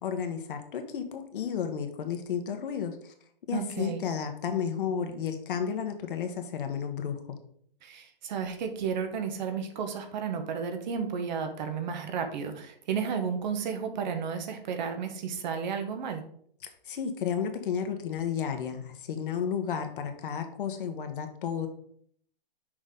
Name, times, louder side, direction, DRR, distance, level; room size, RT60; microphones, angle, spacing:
voice 1, 0.0-3.1 3.5-7.2 16.8-21.7, left 7 dB, 60° left, 6 dB, 1.3 m, -32 dB
voice 2, 3.5-4.0 7.8-16.2, right 6 dB, 50° right, 6 dB, 1.2 m, -32 dB
6.4 x 5.0 x 3.8 m, 0.63 s
hypercardioid pair, 140°, 29 cm